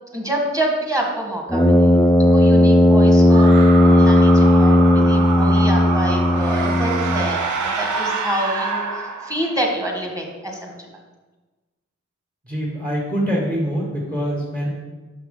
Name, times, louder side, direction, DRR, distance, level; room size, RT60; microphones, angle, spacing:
voice 1, 0.1-1.9 2.2-10.9, right 1 dB, 10° right, 0 dB, 1.7 m, -27 dB
Brass instrument, 1.5-7.4, left 1 dB, 5° left, 0.6 m, -14 dB
sound 1, 3.3-9.7, right 4 dB, 85° right, 0.6 m, -26 dB
voice 2, 12.4-14.7, equal, 30° right, -5 dB, 2.0 m, -24 dB
5.9 x 5.5 x 3.9 m, 1.2 s
cardioid pair, 45°, 29 cm